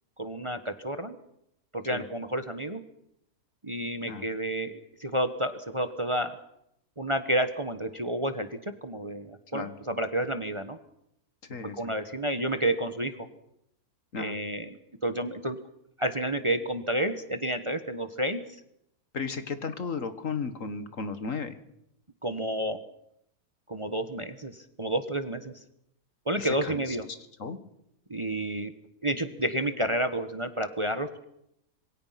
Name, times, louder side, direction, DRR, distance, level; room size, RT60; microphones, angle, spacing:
voice 1, 0.2-1.2 1.7-2.8 3.6-4.7 5.0-6.3 7.0-10.8 11.7-13.3 14.2-15.6 16.0-18.4 22.2-22.8 23.7-25.5 26.3-27.1 28.1-28.7 29.0-31.2, right 1 dB, 20° right, 9 dB, 1.2 m, -30 dB
voice 2, 19.1-21.6 26.4-26.8 27.4-27.6, left 5 dB, 60° left, 10 dB, 1.9 m, -34 dB
26.5 x 22.5 x 5.9 m, 0.79 s
omnidirectional pair, 1.6 m